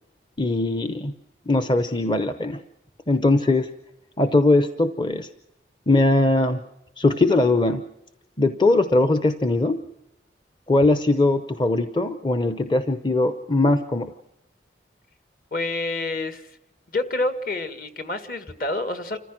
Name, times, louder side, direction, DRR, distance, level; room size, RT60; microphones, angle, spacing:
voice 1, 0.4-1.1 1.5-2.6 3.1-3.7 4.2-5.3 5.9-6.6 7.0-7.8 8.4-9.8 10.7-14.1, left 2 dB, 25° left, 9 dB, 0.7 m, -20 dB
voice 2, 15.5-16.6 16.9-19.2, left 2 dB, 50° left, 9 dB, 1.7 m, -28 dB
28.5 x 15.0 x 6.1 m, 0.92 s
head